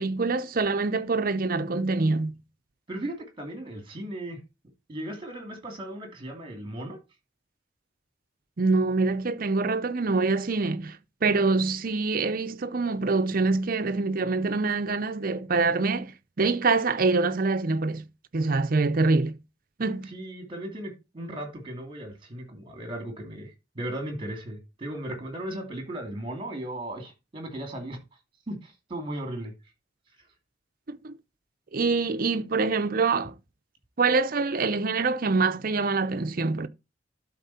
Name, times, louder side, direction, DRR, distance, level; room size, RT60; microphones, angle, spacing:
voice 1, 0.0-2.4 8.6-16.1 16.4-18.1 18.3-19.4 19.8-20.1 30.9-31.1 31.7-33.3 34.0-36.7, right 3 dB, 50° right, 0.6 m, -25 dB
voice 2, 2.9-4.4 4.9-7.0 20.1-28.0 28.5-29.5, right 1 dB, 25° right, 2.7 m, -36 dB
12.0 x 4.2 x 4.2 m
head